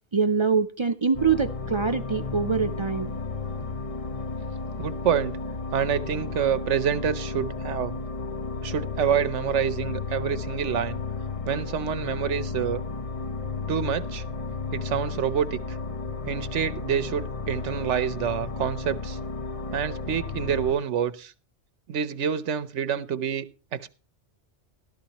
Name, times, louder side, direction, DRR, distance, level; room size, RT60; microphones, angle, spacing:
voice 1, 0.1-3.1, right 5 dB, 40° right, 0.4 m, -24 dB
sound 1, 1.1-20.7, left 4 dB, 35° left, 0.8 m, -33 dB
voice 2, 4.8-5.4 5.7-7.9 8.6-11.0 11.5-12.8 13.7-14.2 14.7-15.8 16.3-19.2 19.7-21.3 21.9-23.4 23.7-23.9, right 8 dB, 80° right, 1.2 m, -27 dB
13.5 x 13.0 x 3.0 m
omnidirectional pair, 1.2 m